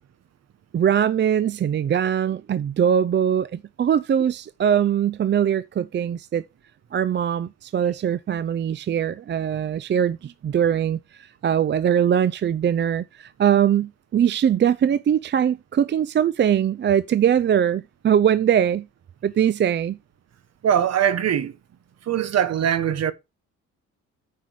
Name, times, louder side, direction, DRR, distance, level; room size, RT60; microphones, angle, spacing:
voice 1, 0.7-6.4 6.9-18.9 19.2-20.0, right 9 dB, 40° right, 0.5 m, -21 dB
voice 2, 20.6-21.6 22.0-23.1, right 9 dB, 60° right, 1.3 m, -21 dB
9.2 x 5.6 x 4.7 m
cardioid pair, 90°, 30 cm